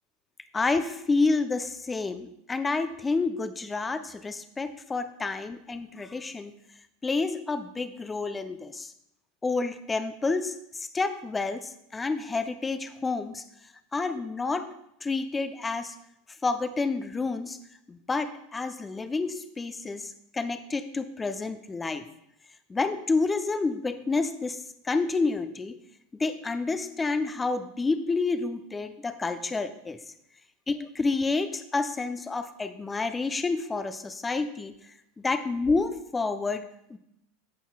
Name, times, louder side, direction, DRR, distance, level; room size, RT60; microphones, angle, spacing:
voice 1, 0.5-6.5 7.0-8.9 9.4-13.4 13.9-14.7 15.0-15.9 16.4-17.6 17.9-22.0 22.7-25.8 26.2-30.0 30.7-34.7 35.2-37.0, left 3 dB, 15° left, 10 dB, 0.6 m, -29 dB
14.0 x 5.5 x 2.3 m, 0.78 s
hypercardioid pair, 85°, 0 cm